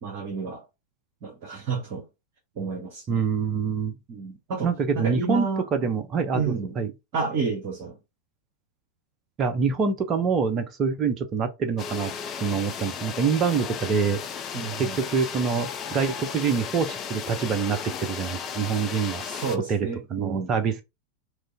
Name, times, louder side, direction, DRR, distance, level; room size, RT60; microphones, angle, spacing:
voice 1, 0.0-0.7 1.2-2.0 2.6-3.3 4.1-5.7 6.3-6.8 7.1-8.0 14.5-15.0 19.2-20.5, right 5 dB, 45° right, 1.0 m, -30 dB
voice 2, 3.1-3.9 4.6-6.9 9.4-12.1 12.4-14.2 14.8-19.2 19.7-20.8, right 5 dB, 30° right, 0.6 m, -26 dB
sound 1, 11.8-19.6, left 7 dB, 30° left, 0.4 m, -35 dB
3.1 x 2.6 x 3.4 m
figure-of-eight pair, 90°, 0 cm